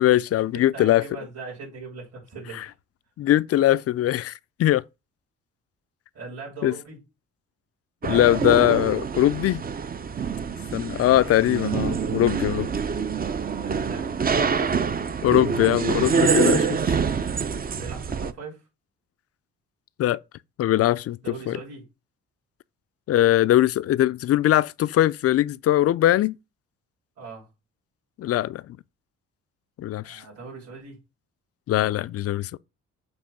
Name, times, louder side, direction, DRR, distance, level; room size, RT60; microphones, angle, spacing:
voice 1, 0.0-1.0 3.2-4.3 4.6-4.8 6.6-6.7 8.0-9.6 10.7-12.7 15.2-17.0 20.0-20.2 20.6-21.2 21.5-21.6 23.1-26.4 28.2-28.6 29.8-30.2 31.7-32.6, left 13 dB, 50° left, 0.4 m, -21 dB
voice 2, 0.5-2.7 6.1-7.0 8.0-8.6 12.8-13.1 13.4-15.1 17.7-18.6 21.2-21.9 27.2-27.5 30.0-31.0, right 4 dB, 55° right, 4.5 m, -40 dB
sound 1, 8.0-18.3, right 6 dB, 30° right, 0.6 m, -26 dB
7.3 x 3.1 x 5.7 m
cardioid pair, 90°, 30 cm